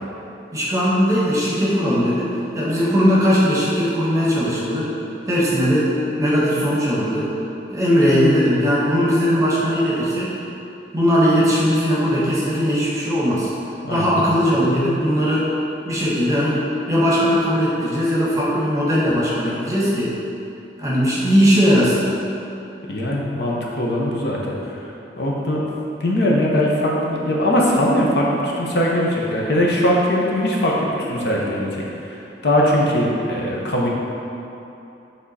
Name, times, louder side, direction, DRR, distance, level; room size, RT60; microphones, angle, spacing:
voice 1, 0.5-4.9 5.3-7.3 7.7-10.3 10.9-13.5 13.9-15.5 15.8-20.1 20.8-22.0, equal, 15° right, -7 dB, 1.1 m, -19 dB
voice 2, 13.8-14.3 22.9-24.8 25.2-25.6 26.0-30.7 31.1-31.8 32.4-33.9, left 1 dB, 65° left, -3 dB, 0.9 m, -20 dB
7.5 x 3.6 x 4.2 m, 2.9 s
head